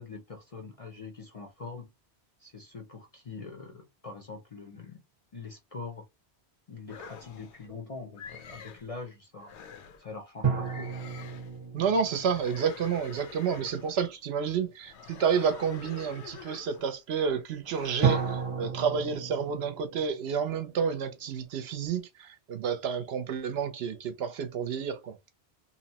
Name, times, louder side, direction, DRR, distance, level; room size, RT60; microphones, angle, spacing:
voice 1, 0.0-1.9 2.4-5.0 5.3-6.0 6.7-9.5 10.0-10.9, left 4 dB, 40° left, 0.5 m, -43 dB
sound 1, 6.9-7.7 8.2-8.9 9.4-10.1 10.6-11.6 12.1-14.1 14.8-17.0 17.6-18.4, left 6 dB, 75° left, 0.9 m, -47 dB
sound 2, 10.4-13.8 18.0-21.4, right 6 dB, 30° right, 0.9 m, -33 dB
voice 2, 11.7-25.2, right 6 dB, 70° right, 0.8 m, -30 dB
2.8 x 2.0 x 2.7 m
omnidirectional pair, 1.2 m